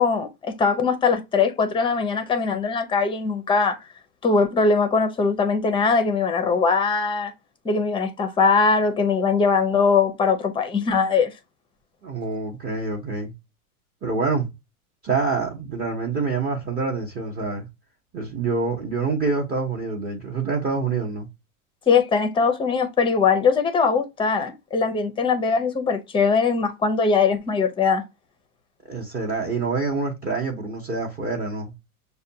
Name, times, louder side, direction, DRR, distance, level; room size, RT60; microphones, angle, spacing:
voice 1, 0.0-3.8 4.2-7.3 7.6-11.3 21.9-28.0, left 5 dB, 10° left, 0.6 m, -21 dB
voice 2, 12.0-13.3 14.0-14.5 15.0-17.7 18.1-21.3 28.9-31.7, right 4 dB, 20° right, 0.9 m, -26 dB
6.4 x 2.3 x 2.7 m
hypercardioid pair, 125°, 43 cm